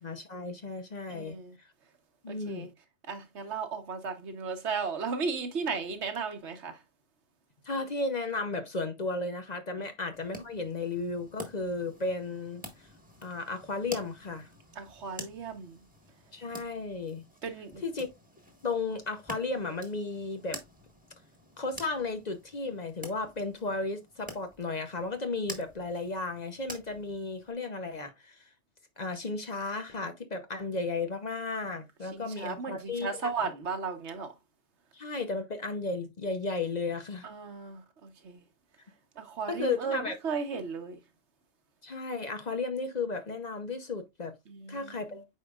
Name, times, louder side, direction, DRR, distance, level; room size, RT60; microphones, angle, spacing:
voice 1, 0.0-1.4 2.2-2.7 7.6-12.6 13.2-14.5 16.3-17.2 17.8-18.1 18.6-20.6 21.6-28.4 29.0-33.3 34.9-37.2 39.5-40.2 41.8-44.3 44.7-45.3, left 3 dB, 40° left, 0.8 m, -34 dB
voice 2, 1.1-1.6 2.3-2.7 3.1-6.8 9.8-9.9 14.7-15.8 17.4-17.8 32.1-34.3 37.2-38.4 39.2-41.0 44.5-45.2, right 5 dB, 75° right, 1.4 m, -35 dB
sound 1, 10.1-27.5, right 1 dB, 5° right, 1.4 m, -48 dB
8.6 x 4.9 x 2.4 m
omnidirectional pair, 1.2 m